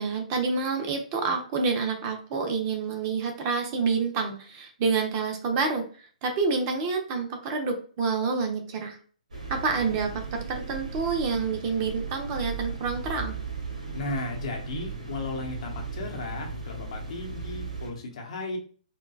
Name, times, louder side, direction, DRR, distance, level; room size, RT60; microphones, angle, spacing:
voice 1, 0.0-9.0 9.5-13.4, right 4 dB, 35° right, 4 dB, 0.7 m, -28 dB
sound 1, 9.3-17.9, right 4 dB, 70° right, 1.3 m, -36 dB
voice 2, 13.9-18.6, left 2 dB, 50° left, 2 dB, 0.9 m, -35 dB
4.4 x 2.2 x 2.3 m, 0.42 s
figure-of-eight pair, 125°, 4 cm